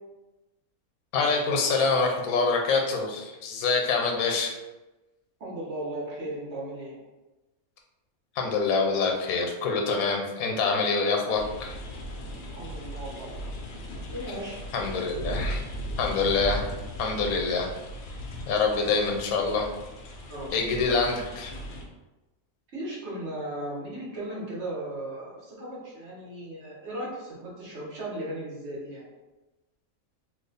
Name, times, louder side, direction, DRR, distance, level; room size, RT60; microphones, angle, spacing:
voice 1, 1.1-4.5 8.4-11.8 14.7-15.6 16.0-16.7 17.0-17.7 18.5-19.7 20.5-21.5, left 4 dB, 80° left, 2 dB, 1.1 m, -26 dB
voice 2, 5.4-7.0 12.5-13.3 14.1-14.6 20.3-20.5 22.7-29.1, right 1 dB, 50° right, -5 dB, 1.4 m, -36 dB
sound 1, 11.3-21.8, equal, 60° left, 0.7 m, -37 dB
2.9 x 2.3 x 4.0 m, 1.1 s
omnidirectional pair, 1.5 m